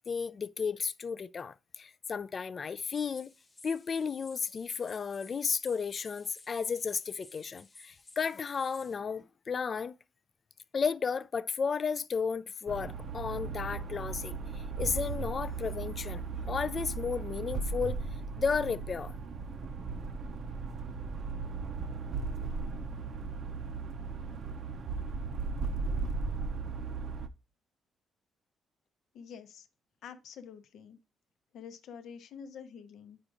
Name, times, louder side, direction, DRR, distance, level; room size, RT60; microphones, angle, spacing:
voice 1, 0.1-3.3 3.6-9.9 10.7-18.0 18.4-19.1, left 5 dB, 40° left, 0.3 m, -33 dB
sound 1, 2.8-9.0, left 2 dB, 25° left, 0.9 m, -56 dB
sound 2, 12.7-27.3, right 4 dB, 55° right, 0.5 m, -36 dB
voice 2, 29.1-29.7 30.0-31.0 31.5-33.2, left 7 dB, 75° left, 0.7 m, -47 dB
8.6 x 4.9 x 2.5 m
cardioid pair, 90°, 0 cm